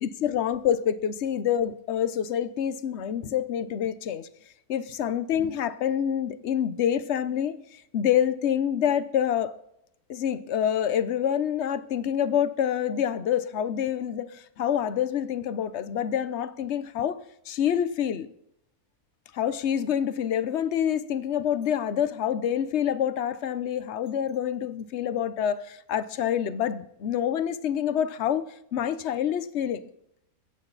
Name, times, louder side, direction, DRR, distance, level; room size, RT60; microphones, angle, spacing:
voice 1, 0.0-4.3 4.7-9.5 10.1-17.2 17.5-18.3 19.3-29.9, left 9 dB, 55° left, 1.0 m, -27 dB
23.5 x 9.0 x 4.1 m
omnidirectional pair, 1.6 m